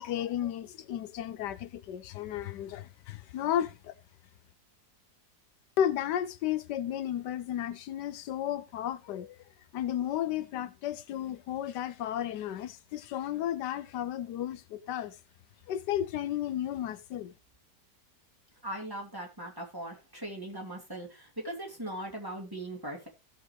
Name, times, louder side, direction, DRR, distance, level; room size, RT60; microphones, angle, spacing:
voice 1, 0.0-3.9 5.8-9.4 9.7-15.1 15.7-17.3, left 11 dB, 85° left, 1.3 m, -33 dB
voice 2, 18.6-23.1, right 1 dB, 10° right, 2.9 m, -39 dB
16.5 x 6.3 x 3.2 m
omnidirectional pair, 1.8 m